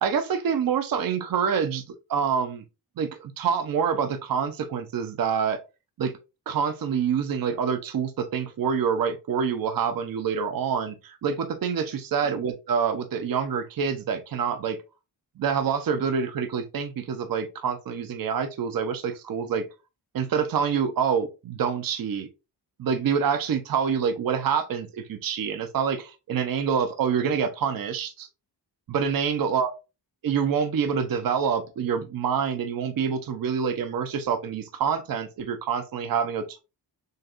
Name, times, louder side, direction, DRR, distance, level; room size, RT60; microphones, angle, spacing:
voice 1, 0.0-2.6 3.0-5.6 6.0-6.1 6.5-14.8 15.4-19.6 20.1-22.3 22.8-28.3 28.9-29.7 30.2-36.6, right 7 dB, 50° right, 0.6 m, -26 dB
6.5 x 2.3 x 2.4 m
wide cardioid pair, 175°, 44 cm